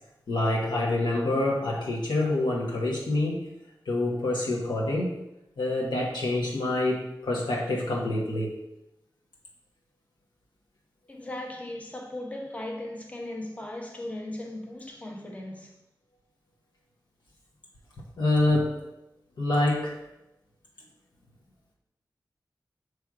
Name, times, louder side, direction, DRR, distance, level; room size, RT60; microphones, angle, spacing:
voice 1, 0.3-3.5 3.8-5.2 5.6-8.5 18.2-18.8 19.4-19.9, left 2 dB, 80° left, 1.2 m, -26 dB
voice 2, 11.1-15.7, left 1 dB, 20° left, 1.0 m, -37 dB
6.2 x 3.4 x 4.7 m
wide cardioid pair, 95°, 8 cm